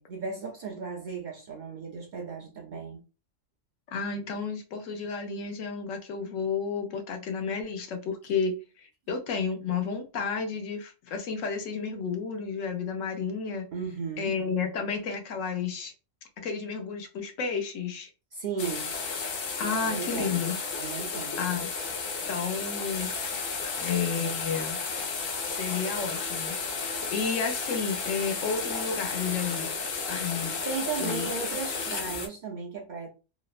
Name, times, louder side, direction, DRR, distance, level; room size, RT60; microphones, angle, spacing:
voice 1, 0.0-3.0 13.7-14.3 18.3-18.9 19.7-20.4 20.7-21.4 30.7-33.1, right 5 dB, 65° right, 0.4 m, -35 dB
voice 2, 3.9-13.7 14.2-15.9 16.4-18.1 19.6-20.5 21.4-21.7 22.3-23.1 23.8-24.8 25.5-26.6 27.1-29.7 30.1-30.5 31.0-31.3, left 5 dB, 75° left, 1.0 m, -31 dB
sound 1, 18.6-32.3, left 4 dB, 60° left, 0.7 m, -33 dB
3.0 x 2.0 x 2.3 m
omnidirectional pair, 1.4 m